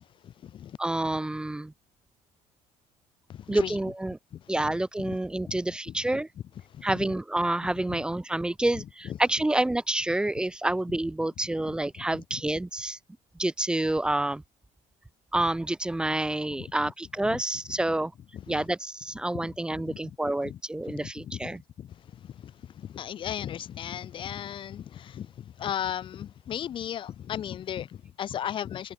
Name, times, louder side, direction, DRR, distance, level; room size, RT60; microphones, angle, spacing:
voice 1, 0.0-0.8 3.3-3.9 4.3-5.2 5.4-5.6 5.9-6.2 6.7-7.1 7.9-8.0 8.7-9.2 12.0-12.4 16.5-16.9 17.2-17.8 18.3-18.7 19.3-21.5 21.8-28.9, left 10 dB, 35° left, 1.9 m, -37 dB
voice 2, 0.8-1.7 3.5-4.2 4.5-6.3 6.8-13.0 13.4-14.4 15.3-18.1 18.5-21.6, right 1 dB, 5° right, 1.0 m, -28 dB
cardioid pair, 175°, 14 cm